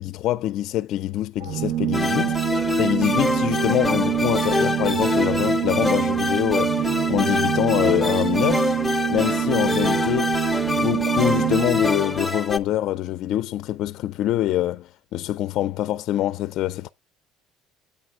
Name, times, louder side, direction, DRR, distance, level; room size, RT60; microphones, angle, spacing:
voice 1, 0.0-2.4 2.8-6.8 7.1-8.7 9.1-10.3 10.8-16.9, left 13 dB, 60° left, 0.4 m, -25 dB
Organ, 1.4-12.1, right 11 dB, 60° right, 0.6 m, -25 dB
sound 1, 1.9-12.6, left 2 dB, 10° left, 0.6 m, -25 dB
8.6 x 4.2 x 4.7 m
cardioid pair, 125°, 0 cm